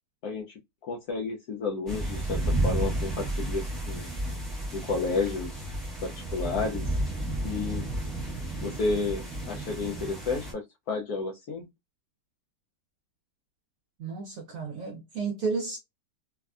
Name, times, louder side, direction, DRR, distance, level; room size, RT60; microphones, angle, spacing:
voice 1, 0.2-0.5 0.8-4.1 4.7-5.6 6.0-6.9 7.4-7.9 8.6-11.7, left 4 dB, 70° left, 1.0 m, -31 dB
sound 1, 1.9-10.5, right 1 dB, ahead, 0.4 m, -32 dB
voice 2, 14.0-15.8, right 4 dB, 65° right, 0.9 m, -32 dB
3.4 x 2.1 x 2.3 m
omnidirectional pair, 1.8 m